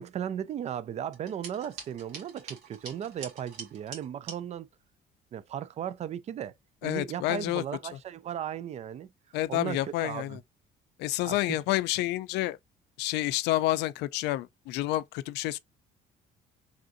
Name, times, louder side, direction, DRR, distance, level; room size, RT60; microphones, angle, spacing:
voice 1, 0.0-4.7 5.3-6.5 6.8-9.1 9.5-10.4 11.2-11.6, right 9 dB, 40° right, 0.4 m, -36 dB
sound 1, 1.1-4.4, right 4 dB, 85° right, 1.8 m, -44 dB
voice 2, 6.8-7.6 9.3-10.4 11.0-12.6 13.0-15.6, left 16 dB, 85° left, 0.4 m, -29 dB
3.5 x 2.5 x 2.5 m
cardioid pair, 110°, 17 cm